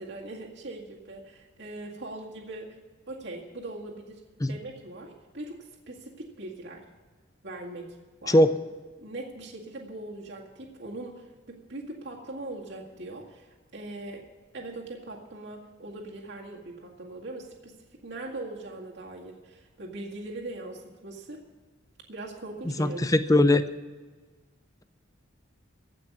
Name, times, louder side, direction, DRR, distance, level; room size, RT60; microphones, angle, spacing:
voice 1, 0.0-2.8 3.1-4.2 4.5-6.8 7.4-8.4 9.0-14.2 14.5-17.8 18.0-21.4 22.1-23.0, right 2 dB, 60° right, -3 dB, 2.0 m, -41 dB
voice 2, 22.8-23.6, left 1 dB, 15° left, 11 dB, 0.6 m, -20 dB
16.0 x 6.0 x 9.4 m, 1.3 s
head